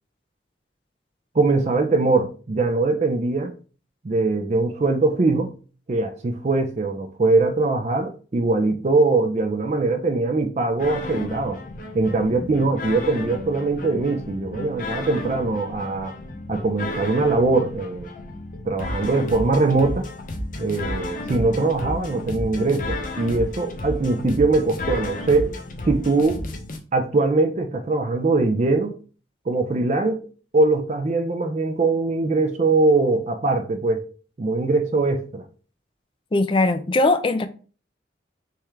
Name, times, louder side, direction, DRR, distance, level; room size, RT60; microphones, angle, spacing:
voice 1, 1.3-3.5 4.0-5.5 5.9-11.6 11.9-16.1 16.5-18.1 18.7-20.1 20.6-25.6 25.9-26.4 26.9-28.9 29.5-30.2 30.5-34.1 34.4-35.4, right 3 dB, 35° right, 0.4 m, -21 dB
sound 1, 10.8-26.8, left 1 dB, 45° left, 0.7 m, -32 dB
voice 2, 36.3-37.5, left 2 dB, 30° left, 0.4 m, -20 dB
3.5 x 3.2 x 4.5 m
head